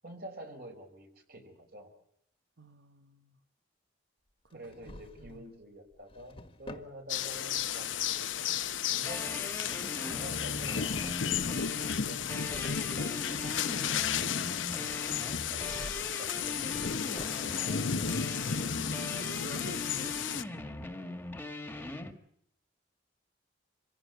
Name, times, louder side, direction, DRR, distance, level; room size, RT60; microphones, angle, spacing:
voice 1, 0.0-1.9 4.5-9.6 10.0-11.0 11.8-13.7 15.2-16.8, right 1 dB, 55° right, 4 dB, 5.1 m, -48 dB
voice 2, 2.6-3.4 4.4-5.5 10.1-10.7 11.7-12.5 14.7-15.3 18.9-21.1, right 2 dB, 70° right, 8 dB, 1.2 m, -51 dB
Drawer open or close, 4.5-5.5 5.9-7.0 10.6-11.7 12.1-13.2 15.4-16.1 16.5-17.7, left 1 dB, 30° left, 1.6 m, -48 dB
sound 1, 7.1-20.4, left 8 dB, 80° left, 0.9 m, -33 dB
sound 2, 9.0-22.1, left 1 dB, 10° left, 1.8 m, -41 dB
26.0 x 16.5 x 8.0 m, 0.71 s
head